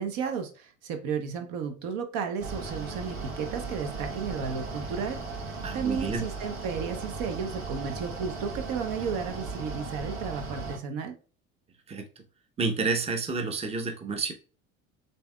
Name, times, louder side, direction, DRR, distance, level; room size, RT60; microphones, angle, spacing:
voice 1, 0.0-11.1, right 6 dB, 60° right, 8 dB, 0.9 m, -33 dB
Mechanical fan, 2.4-10.8, right 3 dB, 80° right, 1.2 m, -37 dB
voice 2, 5.6-6.2 11.9-12.1 12.6-14.3, right 4 dB, 15° right, 5 dB, 0.7 m, -29 dB
6.8 x 2.8 x 2.2 m, 0.37 s
hypercardioid pair, 75°, 39 cm